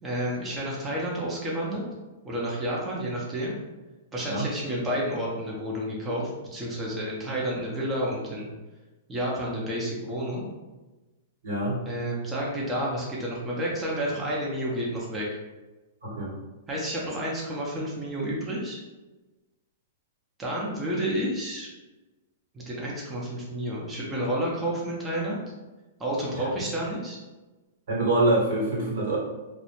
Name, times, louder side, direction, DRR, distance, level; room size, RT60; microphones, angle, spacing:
voice 1, 0.0-1.8 2.2-3.5 4.1-8.5 9.1-10.5 11.9-15.3 16.7-18.8 20.4-21.7 22.5-25.4 26.0-27.2, right 1 dB, 15° right, -5 dB, 0.6 m, -30 dB
voice 2, 11.4-11.8 16.0-16.3 27.9-29.2, right 2 dB, 70° right, -5 dB, 1.1 m, -25 dB
2.1 x 2.1 x 2.9 m, 1.1 s
hypercardioid pair, 120°, 0 cm